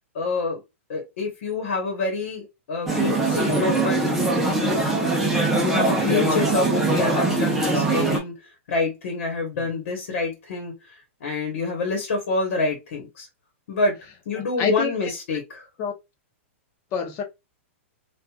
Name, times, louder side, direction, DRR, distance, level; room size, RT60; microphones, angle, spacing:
voice 1, 0.1-0.6 0.9-4.0 4.7-8.4 8.7-13.3 13.7-14.0 14.2-15.7, left 3 dB, 65° left, 1.2 m, -27 dB
sound 1, 2.9-8.2, right 2 dB, 5° right, 0.8 m, -22 dB
voice 2, 14.4-14.9 15.8-15.9 16.9-17.2, left 5 dB, 30° left, 0.8 m, -27 dB
3.1 x 2.5 x 2.3 m
hypercardioid pair, 150°, 7 cm